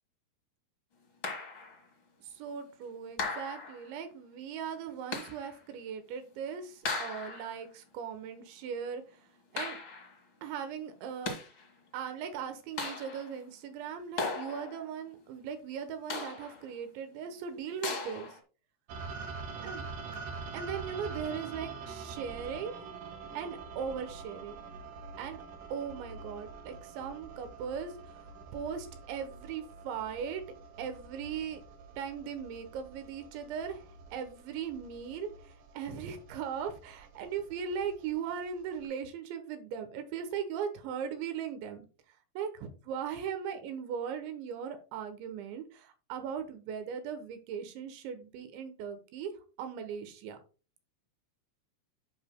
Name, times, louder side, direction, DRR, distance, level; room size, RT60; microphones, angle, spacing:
sound 1, 1.2-1.8 3.2-3.9 5.1-5.6 6.8-7.6 9.6-10.2 11.0-11.7 12.8-13.4 14.2-14.9 16.1-16.7 17.8-18.4, left 3 dB, 75° left, 1.1 m, -37 dB
voice 1, 2.2-9.0 9.5-9.8 10.4-11.4 11.9-18.3 19.6-19.8 20.5-22.7 23.3-24.6 25.2-25.4 25.7-27.9 28.5-30.4 30.8-31.6 32.0-41.9 42.4-49.3 49.6-50.4, right 7 dB, 85° right, 8 dB, 3.3 m, -38 dB
sound 2, 18.9-38.9, right 4 dB, 60° right, 2.7 m, -46 dB
14.0 x 5.6 x 2.2 m, 0.35 s
omnidirectional pair, 5.1 m